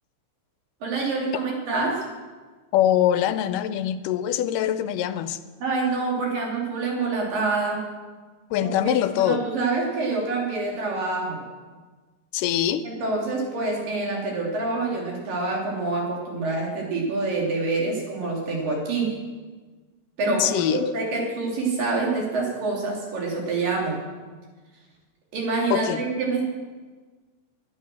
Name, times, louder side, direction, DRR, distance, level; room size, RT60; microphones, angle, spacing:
voice 1, 0.8-2.0 5.6-7.8 8.6-8.7 9.2-11.5 12.8-19.1 20.2-24.0 25.3-26.5, right 3 dB, 85° right, 5.1 m, -26 dB
voice 2, 2.7-5.4 8.5-9.4 12.3-12.8 20.4-20.9 25.7-26.0, left 11 dB, 85° left, 2.2 m, -23 dB
19.0 x 11.0 x 6.3 m
omnidirectional pair, 3.8 m